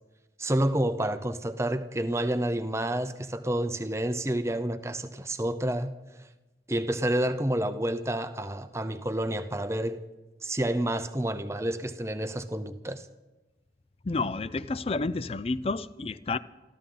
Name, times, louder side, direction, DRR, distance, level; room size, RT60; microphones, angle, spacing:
voice 1, 0.4-5.9 6.7-10.0 10.4-13.1, right 1 dB, 15° right, 0.6 m, -29 dB
voice 2, 14.0-16.4, left 3 dB, 30° left, 0.4 m, -30 dB
27.5 x 13.0 x 3.9 m
head